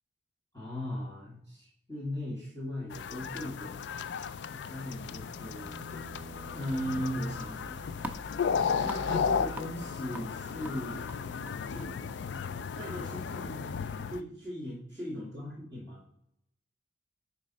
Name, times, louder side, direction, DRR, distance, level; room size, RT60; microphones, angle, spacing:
voice 1, 0.5-3.8 4.5-5.9 6.5-8.0 8.8-11.1 11.7-11.9 12.8-13.7 14.0-16.0, equal, 15° left, -8 dB, 1.5 m, -38 dB
sound 1, 2.9-14.2, left 6 dB, 60° left, 0.3 m, -35 dB
sound 2, 4.5-8.5 10.9-11.0, right 1 dB, 35° right, 0.8 m, -51 dB
sound 3, 7.4-14.2, right 1 dB, 10° right, 0.5 m, -48 dB
9.1 x 4.3 x 4.0 m, 0.75 s
head